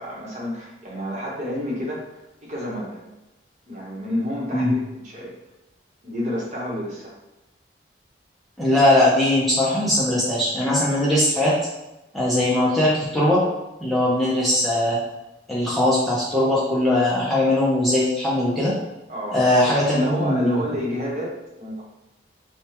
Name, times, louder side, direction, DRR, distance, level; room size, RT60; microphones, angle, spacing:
voice 1, 0.0-2.1 2.4-3.0 3.7-5.4 6.0-7.1 19.1-19.4 19.6-21.8, equal, 40° right, -5 dB, 1.0 m, -29 dB
voice 2, 8.6-11.5 12.1-13.4 13.8-15.0 15.5-18.7 19.3-20.6, left 1 dB, ahead, -8 dB, 0.6 m, -20 dB
5.0 x 2.3 x 2.9 m, 0.95 s
head